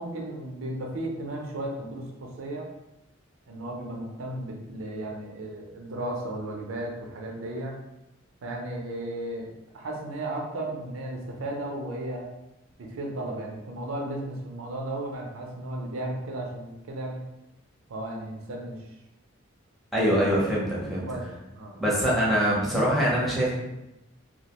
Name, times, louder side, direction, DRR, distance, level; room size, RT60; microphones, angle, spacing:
voice 1, 0.0-2.7 3.5-7.7 8.4-12.3 12.8-17.2 17.9-18.8 21.1-21.8, right 1 dB, 85° right, 0 dB, 0.5 m, -35 dB
voice 2, 19.9-21.1 21.8-23.5, equal, ahead, -6 dB, 0.5 m, -23 dB
2.2 x 2.1 x 2.8 m, 0.91 s
head